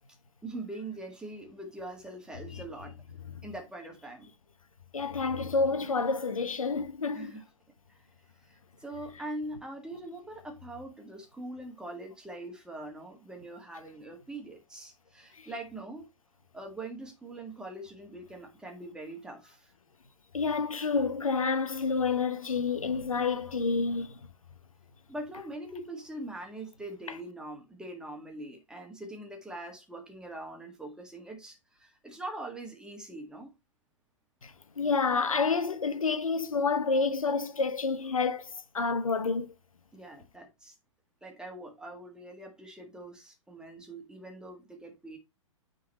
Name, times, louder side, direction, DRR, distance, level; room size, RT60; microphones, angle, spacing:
voice 1, 0.4-2.9 3.4-4.3 7.1-7.4 7.9-8.0 8.4-16.1 16.5-19.7 25.1-33.5 39.9-40.7 41.2-45.2, right 1 dB, 5° right, 1.7 m, -42 dB
voice 2, 4.9-7.3 15.4-15.5 20.3-24.2 34.4-39.5, left 4 dB, 85° left, 0.9 m, -29 dB
9.1 x 3.9 x 3.0 m
figure-of-eight pair, 120°, 17 cm